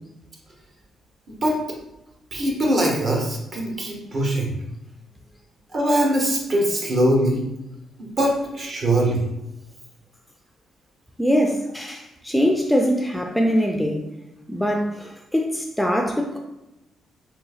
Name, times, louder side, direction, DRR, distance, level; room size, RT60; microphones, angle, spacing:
voice 1, 1.3-1.6 2.3-4.5 5.7-7.4 8.0-9.2, right 1 dB, 50° right, -1 dB, 1.0 m, -22 dB
voice 2, 11.2-14.1 14.5-16.4, equal, 5° left, 2 dB, 0.3 m, -22 dB
3.9 x 2.7 x 2.4 m, 0.94 s
cardioid pair, 90°, 0 cm